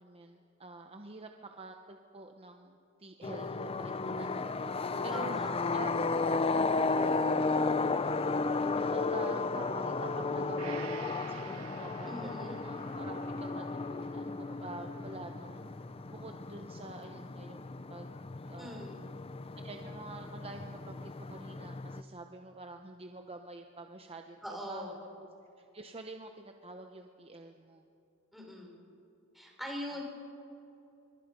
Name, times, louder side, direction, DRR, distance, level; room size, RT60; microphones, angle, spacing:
voice 1, 0.0-5.4 5.7-5.9 6.5-7.8 8.6-15.7 16.1-18.1 18.4-18.8 19.6-24.4 24.7-24.9 25.6-27.8, right 2 dB, 25° right, 5 dB, 0.9 m, -47 dB
sound 1, 3.2-22.0, left 3 dB, 25° left, 0.5 m, -34 dB
voice 2, 5.1-5.7 12.1-12.6 18.6-19.0 24.4-24.9 28.3-28.7 29.3-30.1, left 1 dB, ahead, -2 dB, 5.1 m, -42 dB
Gong, 10.6-18.2 18.6-18.7, right 8 dB, 85° right, 1.1 m, -53 dB
26.5 x 24.0 x 5.4 m, 2.8 s
head